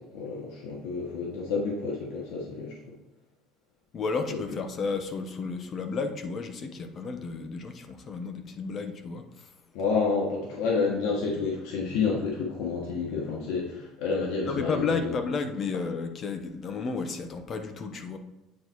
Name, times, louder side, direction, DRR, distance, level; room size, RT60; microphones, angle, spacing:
voice 1, 0.0-2.7 4.3-4.4 9.7-15.1, left 4 dB, 85° left, -2 dB, 1.5 m, -29 dB
voice 2, 3.9-9.5 14.4-18.2, left 4 dB, 30° left, 7 dB, 0.8 m, -32 dB
8.5 x 4.1 x 4.6 m, 1.0 s
cardioid pair, 155°, 0 cm